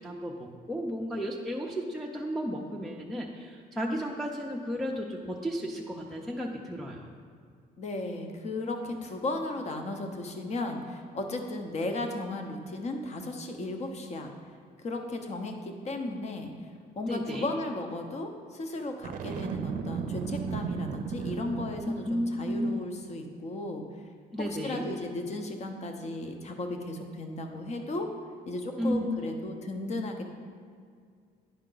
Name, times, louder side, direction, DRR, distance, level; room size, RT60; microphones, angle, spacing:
voice 1, 0.0-7.1 17.1-17.5 21.9-22.8 24.3-24.8 28.8-29.2, equal, ahead, -3 dB, 0.5 m, -33 dB
voice 2, 7.8-14.3 14.8-16.7 17.0-23.8 24.4-28.1 28.5-30.2, left 2 dB, 40° left, 5 dB, 0.8 m, -35 dB
Boom, 19.0-22.2, right 6 dB, 55° right, 0.5 m, -35 dB
10.0 x 4.4 x 3.9 m, 2.1 s
cardioid pair, 110°, 17 cm